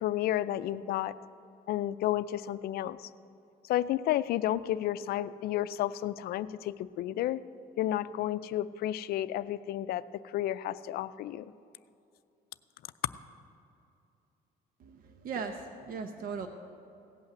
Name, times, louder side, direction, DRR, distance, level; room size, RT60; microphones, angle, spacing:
voice 1, 0.0-1.1 1.7-3.0 3.7-7.4 7.8-10.0 10.3-11.4, left 13 dB, 65° left, 16 dB, 0.4 m, -31 dB
voice 2, 14.8-16.5, right 5 dB, 55° right, 7 dB, 0.8 m, -38 dB
16.5 x 5.6 x 7.8 m, 2.7 s
cardioid pair, 110°, 17 cm